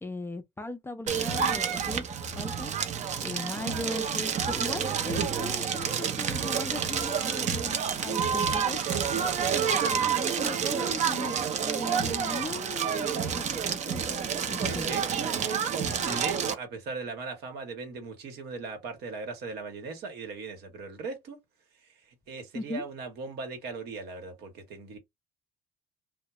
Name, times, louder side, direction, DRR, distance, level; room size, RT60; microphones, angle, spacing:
voice 1, 0.0-2.1 2.3-2.7 3.2-8.8 9.7-14.2 14.5-15.0 22.5-22.8, left 2 dB, 15° left, 0.4 m, -38 dB
Crackle, 1.1-16.5, right 7 dB, 45° right, 0.5 m, -29 dB
voice 2, 14.6-21.4 22.3-25.0, right 4 dB, 75° right, 1.0 m, -38 dB
2.2 x 2.0 x 2.9 m
cardioid pair, 110°, 17 cm